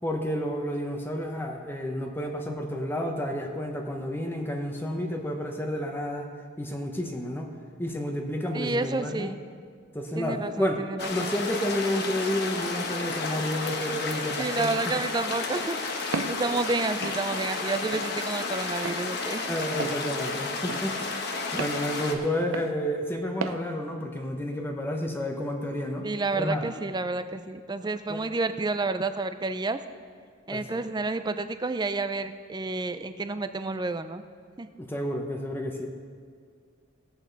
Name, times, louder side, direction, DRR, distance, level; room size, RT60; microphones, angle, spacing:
voice 1, 0.0-6.3 6.6-7.5 7.8-9.3 9.9-14.9 19.5-21.2 21.5-26.1 26.3-26.7 28.1-28.2 30.5-30.8 34.8-35.9, equal, 10° left, 2 dB, 0.9 m, -30 dB
voice 2, 8.5-9.4 10.2-11.3 14.4-19.5 26.0-29.8 30.5-34.2 34.6-34.7, right 3 dB, 20° right, 10 dB, 0.4 m, -30 dB
sound 1, 11.0-22.1, left 3 dB, 55° left, 1.1 m, -32 dB
Walk footsteps, 16.1-16.4 17.0-17.2 17.9-18.1 18.8-19.0 19.8-20.0 20.7-20.8 21.6-21.8 22.5-22.7 23.4-23.6, right 4 dB, 85° right, 0.6 m, -33 dB
18.0 x 8.2 x 4.0 m, 2.1 s
head